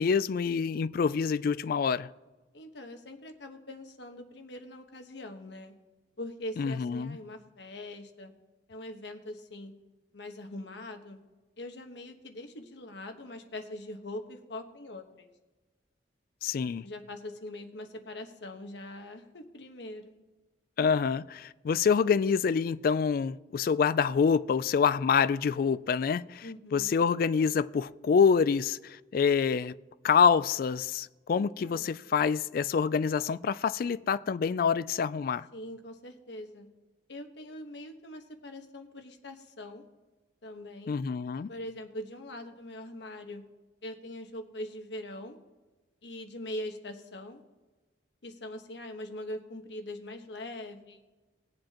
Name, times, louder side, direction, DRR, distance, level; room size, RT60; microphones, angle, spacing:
voice 1, 0.0-2.1 6.6-7.2 16.4-16.8 20.8-26.5 26.7-29.7 30.0-35.5 40.9-41.5, left 6 dB, 55° left, 0.3 m, -26 dB
voice 2, 2.5-5.7 6.2-8.3 8.7-9.7 10.1-11.2 11.6-15.3 16.8-20.1 26.4-26.9 31.3-31.9 35.5-36.7 37.1-39.8 40.4-41.0 41.5-43.4 43.8-45.4 46.0-47.4 48.2-51.0, left 1 dB, 75° left, 1.2 m, -42 dB
20.0 x 7.8 x 2.9 m
head